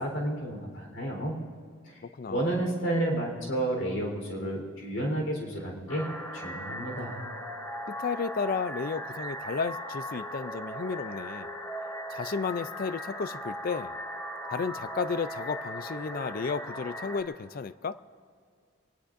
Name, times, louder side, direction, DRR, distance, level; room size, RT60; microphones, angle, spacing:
voice 1, 0.0-1.4 1.8-2.0 2.3-7.3, right 1 dB, 70° left, 1 dB, 4.0 m, -31 dB
voice 2, 2.0-2.6 7.9-11.5 12.1-13.9 14.5-18.0, left 5 dB, 45° left, 15 dB, 0.4 m, -33 dB
sound 1, 5.9-17.2, equal, 15° left, 1.5 m, -38 dB
24.0 x 19.0 x 2.6 m, 2.2 s
head